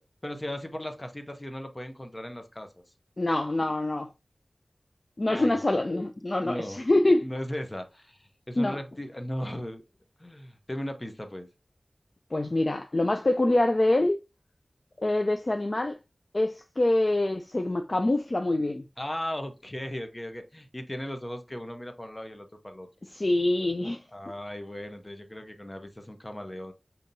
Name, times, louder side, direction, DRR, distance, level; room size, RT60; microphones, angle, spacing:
voice 1, 0.2-2.7 5.3-5.6 6.4-6.8 7.2-9.8 10.2-11.5 19.0-22.9 24.1-26.7, left 1 dB, 25° left, 0.8 m, -37 dB
voice 2, 3.2-4.1 5.2-7.3 8.6-8.8 12.3-14.2 15.0-16.0 16.3-18.8 23.1-24.0, left 2 dB, 45° left, 0.4 m, -25 dB
5.3 x 2.8 x 2.6 m
wide cardioid pair, 55°, 0 cm